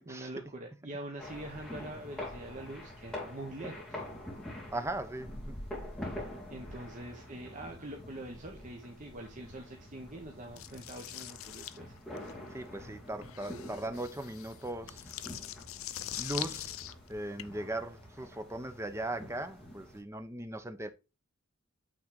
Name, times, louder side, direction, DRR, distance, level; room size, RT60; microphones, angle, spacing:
voice 1, 0.0-4.0 6.5-11.9, right 1 dB, 35° right, 1.1 m, -44 dB
sound 1, 1.2-20.0, left 1 dB, 5° left, 2.5 m, -46 dB
voice 2, 4.7-5.6 12.5-15.0 16.2-16.8 17.1-20.9, right 1 dB, 15° right, 0.8 m, -38 dB
sound 2, 10.6-17.4, left 13 dB, 70° left, 0.5 m, -43 dB
8.8 x 4.0 x 3.7 m
head